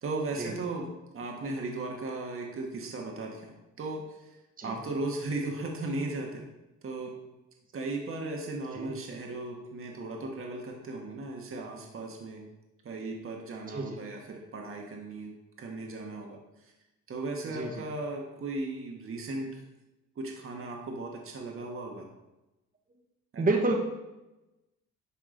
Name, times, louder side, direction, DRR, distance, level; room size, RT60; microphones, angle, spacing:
voice 1, 0.0-4.4 4.6-6.5 6.8-7.2 7.7-12.5 12.8-16.7 17.1-19.6 20.1-22.1 23.3-23.4, right 2 dB, 45° right, 0 dB, 1.4 m, -37 dB
voice 2, 23.4-23.8, right 2 dB, 30° right, 0 dB, 1.4 m, -28 dB
11.0 x 3.7 x 3.8 m, 0.97 s
cardioid pair, 90°, 30 cm